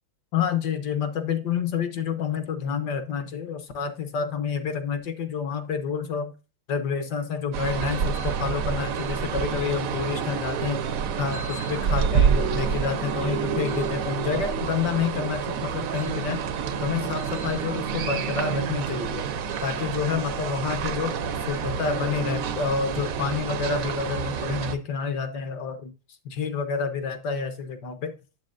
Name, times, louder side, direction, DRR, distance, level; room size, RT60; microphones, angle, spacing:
voice 1, 0.3-6.3 6.7-10.8 11.2-16.4 16.8-19.3 19.6-21.1 21.5-25.9 26.2-28.1, left 6 dB, 65° left, 9 dB, 1.3 m, -28 dB
sound 1, 7.5-24.8, right 7 dB, 75° right, 0.7 m, -28 dB
7.5 x 7.4 x 2.5 m, 0.31 s
omnidirectional pair, 2.3 m